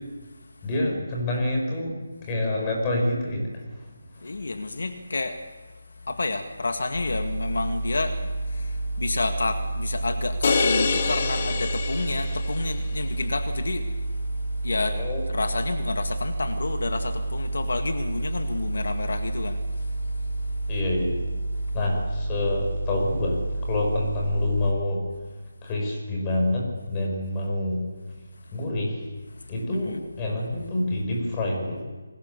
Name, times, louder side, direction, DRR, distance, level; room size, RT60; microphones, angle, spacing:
voice 1, 0.6-2.0 2.2-3.9 14.9-15.2 20.7-21.2 21.7-25.0 25.6-27.8 28.5-29.0 29.5-31.8, left 1 dB, 15° left, 0 dB, 5.7 m, -27 dB
voice 2, 4.2-5.4 6.1-13.9 14.6-19.6 29.8-30.0, left 3 dB, 70° left, 6 dB, 1.9 m, -30 dB
sound 1, 6.9-24.7, right 2 dB, 85° left, 4.9 m, -30 dB
sound 2, 10.4-12.8, left 5 dB, 35° left, 1.9 m, -26 dB
28.0 x 21.0 x 7.0 m, 1.3 s
figure-of-eight pair, 170°, 0 cm